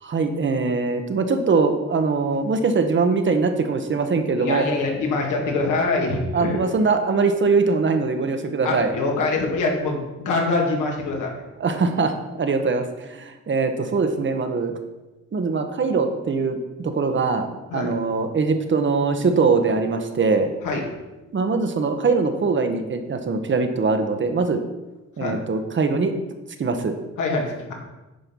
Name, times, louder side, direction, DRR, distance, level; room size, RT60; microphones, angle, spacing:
voice 1, 0.0-4.7 6.3-8.9 11.6-14.7 15.3-20.5 21.3-24.6 25.2-26.1 26.6-27.0, right 4 dB, 40° right, 7 dB, 1.1 m, -22 dB
voice 2, 4.4-6.6 8.6-11.3 17.7-17.9 20.6-20.9 25.2-25.4 27.2-27.7, left 3 dB, 80° left, 0 dB, 2.2 m, -24 dB
10.5 x 4.5 x 5.3 m, 1.1 s
cardioid pair, 90°, 30 cm